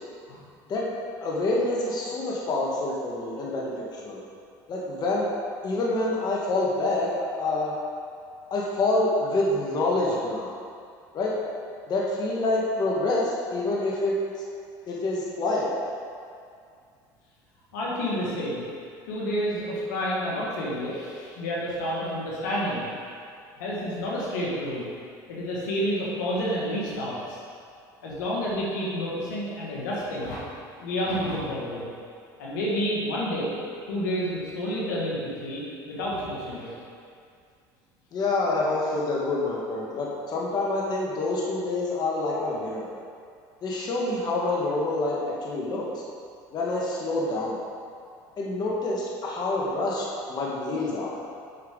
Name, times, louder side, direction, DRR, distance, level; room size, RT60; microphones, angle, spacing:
voice 1, 1.2-4.2 4.7-5.3 5.6-7.7 8.5-10.5 11.1-11.3 11.9-14.2 14.9-15.7 38.1-42.9 43.6-45.9 46.5-47.6 48.4-51.2, left 2 dB, 45° left, -4 dB, 1.5 m, -27 dB
voice 2, 17.7-18.6 19.1-22.9 23.6-24.9 25.3-27.4 28.0-30.4 30.8-31.9 32.4-33.6 33.9-36.8, equal, 90° left, -6 dB, 1.9 m, -29 dB
8.6 x 5.7 x 3.8 m, 2.3 s
supercardioid pair, 90°, 10 cm